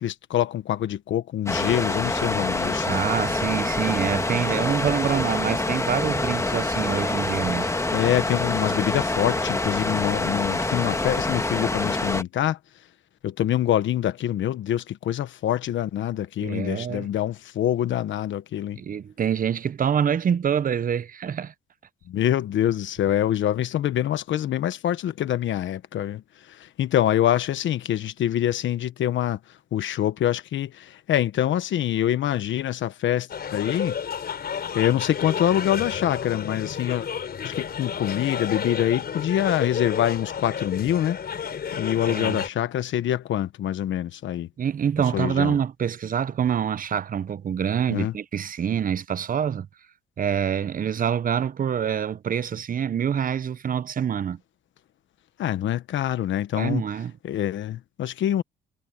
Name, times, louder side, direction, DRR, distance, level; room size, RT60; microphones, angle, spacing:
voice 1, 0.0-2.9 7.9-12.6 13.2-18.8 22.1-26.2 26.5-29.4 29.7-33.9 34.7-37.0 37.4-41.2 41.7-44.5 45.1-45.5 47.9-48.1 55.4-56.8 57.2-58.4, left 11 dB, 70° left, 1.2 m, -25 dB
sound 1, 1.5-12.2, left 2 dB, 15° left, 1.8 m, -26 dB
voice 2, 2.8-7.7 16.4-17.1 18.8-21.5 42.1-42.4 44.6-49.7 50.2-54.4 56.6-57.1, right 8 dB, 45° right, 0.9 m, -26 dB
sound 2, 33.3-42.5, left 7 dB, 50° left, 5.6 m, -31 dB
cardioid pair, 90°, 20 cm